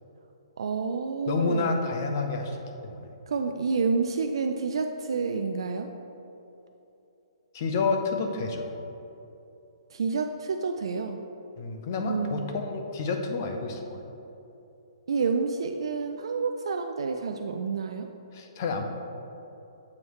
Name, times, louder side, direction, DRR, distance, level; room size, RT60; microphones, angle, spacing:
voice 1, 0.6-1.8 3.3-5.9 9.9-11.2 12.0-12.5 15.1-18.1, right 5 dB, 70° right, 4 dB, 0.3 m, -29 dB
voice 2, 1.3-2.6 2.8-3.1 7.5-8.7 11.6-14.1 18.3-18.8, left 4 dB, 35° left, 4 dB, 0.5 m, -29 dB
7.1 x 3.1 x 4.7 m, 2.9 s
hypercardioid pair, 170°, 3 cm